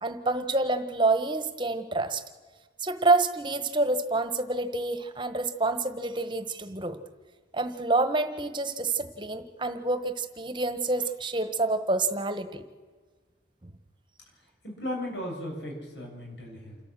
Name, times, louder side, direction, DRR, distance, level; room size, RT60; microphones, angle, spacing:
voice 1, 0.0-2.2 2.8-7.0 7.5-12.6 13.6-13.7, right 2 dB, 25° right, 9 dB, 1.2 m, -27 dB
voice 2, 14.6-16.8, left 1 dB, 75° left, 0 dB, 7.3 m, -36 dB
28.0 x 13.0 x 7.6 m, 1.4 s
head